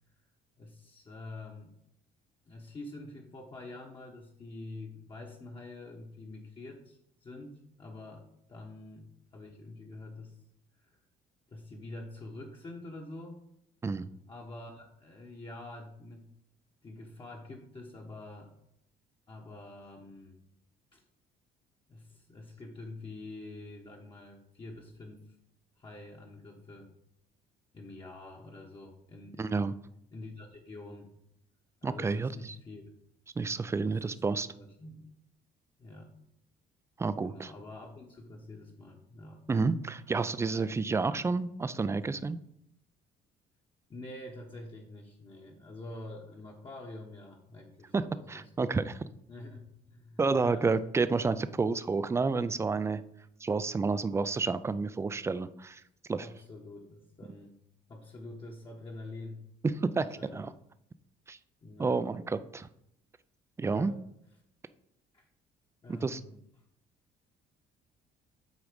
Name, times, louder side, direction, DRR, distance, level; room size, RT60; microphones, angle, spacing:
voice 1, 0.6-1.7 2.5-10.3 10.8-11.0 11.5-13.5 14.3-16.3 16.8-18.5 19.3-20.4 20.9-21.0 21.9-25.3 25.8-26.9 27.7-29.7 30.1-31.1 31.8-32.9 33.8-34.1 34.5-35.0 35.8-36.1 37.2-39.4 43.9-48.7 49.3-50.8 56.2-57.6 57.9-59.4 60.2-60.5 61.6-62.0 63.7-64.0 65.1-65.2 65.8-66.4, left 2 dB, 30° left, -1 dB, 1.0 m, -46 dB
voice 2, 29.4-29.8 31.8-32.6 33.4-34.5 37.0-37.5 39.5-42.4 47.9-49.0 50.2-53.0 53.4-55.8 56.1-56.3 59.6-60.5 61.3-61.4 61.8-62.7 63.6-63.9 65.9-66.2, right 4 dB, 15° right, 14 dB, 0.4 m, -30 dB
8.1 x 3.8 x 5.1 m, 0.77 s
cardioid pair, 110°, 17 cm